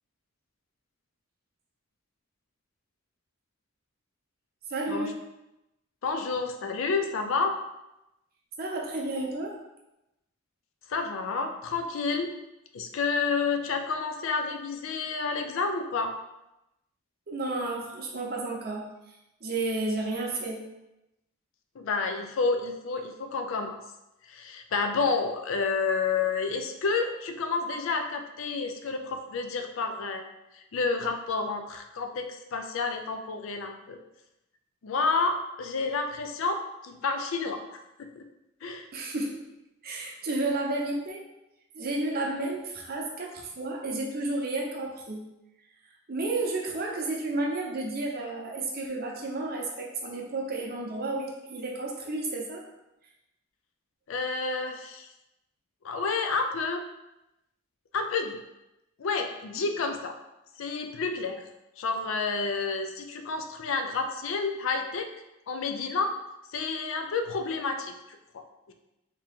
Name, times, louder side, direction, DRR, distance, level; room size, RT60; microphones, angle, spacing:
voice 1, 4.7-5.2 8.6-9.6 17.3-18.8 19.4-20.6 38.9-39.4 39.8-41.3 41.7-45.2 46.1-52.6, right 2 dB, 45° right, -1 dB, 0.7 m, -32 dB
voice 2, 6.0-7.6 10.9-12.3 12.7-16.1 21.8-23.8 24.3-30.3 30.5-34.0 34.8-38.2 38.6-38.9 54.1-55.1 55.8-56.8 57.9-58.4 59.0-60.1 60.6-61.4 61.8-65.1 65.5-66.1 66.5-68.7, left 4 dB, 65° left, 6 dB, 0.4 m, -30 dB
3.6 x 2.8 x 3.5 m, 0.92 s
head